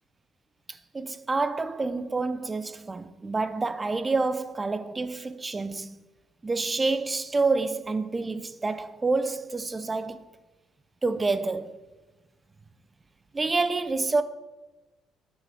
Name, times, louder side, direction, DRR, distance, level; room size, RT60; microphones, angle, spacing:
voice 1, 0.9-6.0 6.4-10.2 11.0-11.8 13.3-14.2, right 3 dB, 25° right, 0.6 m, -28 dB
9.8 x 6.4 x 3.5 m
supercardioid pair, 60°, 0 cm